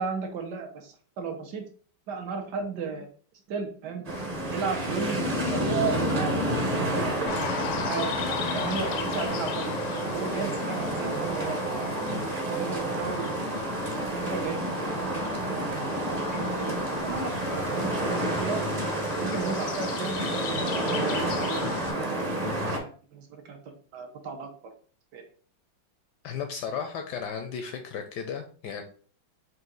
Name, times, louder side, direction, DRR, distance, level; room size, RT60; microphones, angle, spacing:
voice 1, 0.0-1.6 2.1-3.1 3.5-4.0 4.5-7.3 7.8-8.1 8.5-9.8 10.1-11.9 12.5-13.3 14.1-14.6 14.9-15.1 15.4-15.8 16.3-16.7 17.0-18.6 19.2-21.5 22.0-23.6 23.9-24.5 25.1-25.2, right 5 dB, 65° right, 3 dB, 1.2 m, -34 dB
sound 1, 4.0-22.8, right 1 dB, 30° right, 0.7 m, -29 dB
sound 2, 7.3-21.9, left 6 dB, 90° left, 1.5 m, -38 dB
voice 2, 26.2-28.8, left 7 dB, 75° left, 6 dB, 1.0 m, -35 dB
4.7 x 2.8 x 3.8 m, 0.43 s
omnidirectional pair, 2.2 m